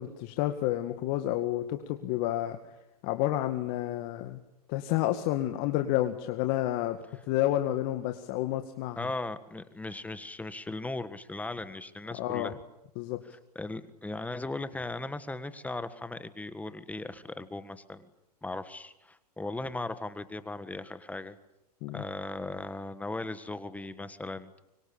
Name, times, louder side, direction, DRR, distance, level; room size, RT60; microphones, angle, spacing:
voice 1, 0.0-2.6 3.0-4.4 4.7-7.0 7.3-9.0 12.1-12.5 13.0-13.2 21.8-22.0, left 14 dB, 50° left, 7 dB, 2.0 m, -30 dB
voice 2, 9.0-12.6 13.6-18.1 18.4-21.4 21.9-24.6, left 2 dB, 5° left, 12 dB, 1.6 m, -38 dB
25.5 x 23.0 x 8.8 m, 0.89 s
hypercardioid pair, 115°, 21 cm